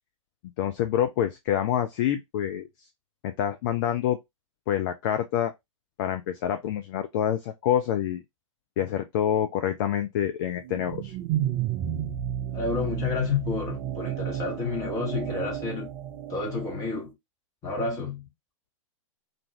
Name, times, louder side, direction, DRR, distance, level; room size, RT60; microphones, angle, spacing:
voice 1, 0.6-2.7 3.2-4.2 4.7-5.5 6.0-8.2 8.8-11.2, left 10 dB, 40° left, 0.4 m, -27 dB
sound 1, 10.6-16.9, right 11 dB, 30° right, 0.4 m, -32 dB
voice 2, 12.5-15.9 16.3-17.1 17.6-18.3, left 4 dB, 20° left, 1.1 m, -30 dB
2.5 x 2.3 x 3.0 m
figure-of-eight pair, 105°, 17 cm